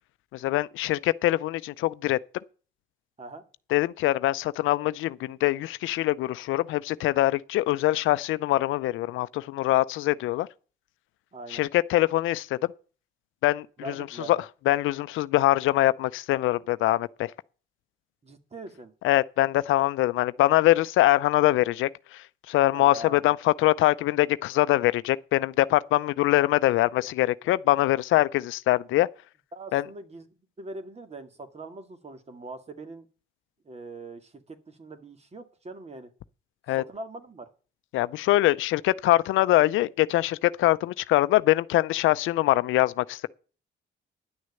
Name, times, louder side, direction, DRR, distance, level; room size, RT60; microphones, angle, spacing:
voice 1, 0.3-2.2 3.7-10.5 11.5-12.6 13.4-14.4 14.7-17.3 19.0-29.1 29.7-29.9 36.7-36.8 37.9-43.3, left 16 dB, 85° left, 0.5 m, -23 dB
voice 2, 11.3-11.6 13.8-14.4 18.2-18.9 22.7-23.2 29.5-30.3 30.6-33.1 33.7-36.1 36.8-37.5, right 2 dB, 30° right, 2.0 m, -42 dB
10.5 x 6.4 x 8.2 m
cardioid pair, 90°, 20 cm